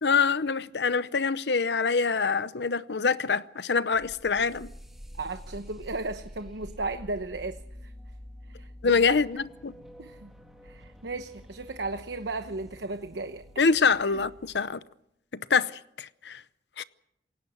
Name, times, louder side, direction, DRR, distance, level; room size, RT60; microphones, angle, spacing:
voice 1, 0.0-4.7 8.8-9.7 13.6-14.8 15.3-16.4 16.8-16.9, left 5 dB, 70° left, 0.8 m, -25 dB
sound 1, 3.9-14.6, equal, ahead, 2.4 m, -48 dB
voice 2, 5.1-7.9 8.5-9.2 10.0-10.3 10.6-13.4 14.0-14.2, right 3 dB, 75° right, 1.0 m, -35 dB
27.5 x 17.0 x 6.4 m
head